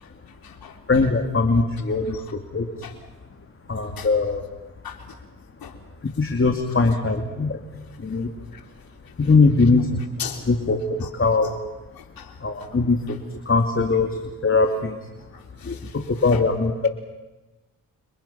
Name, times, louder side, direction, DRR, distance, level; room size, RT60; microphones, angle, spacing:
voice 1, 0.0-0.8 2.1-2.2 2.8-2.9 4.0-4.1 4.8-5.2 5.6-5.7 8.5-8.6 10.2-10.5 11.0-11.1 11.4-11.5 12.0-12.8 15.3-16.0 16.3-16.4, left 7 dB, 85° left, 4 dB, 3.6 m, -38 dB
voice 2, 0.9-2.9 3.7-4.4 6.2-7.6 8.0-8.3 9.2-10.0 10.5-10.8 11.1-11.5 12.4-13.2 13.5-14.2 14.4-15.0 15.6-15.8 16.2-16.9, left 3 dB, 35° left, 4 dB, 2.6 m, -21 dB
29.5 x 26.5 x 5.9 m, 1.1 s
cardioid pair, 70°, 35 cm